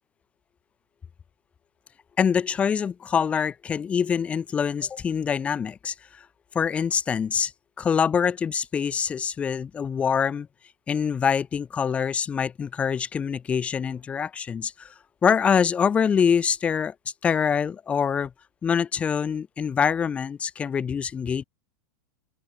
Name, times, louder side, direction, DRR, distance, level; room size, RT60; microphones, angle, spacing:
voice 1, 2.2-6.2 6.5-7.5 7.8-10.5 10.9-14.9 15.2-16.9 17.2-18.3 18.6-21.4, left 7 dB, 10° left, 0.5 m, -25 dB
open air
supercardioid pair, 165°, 10 cm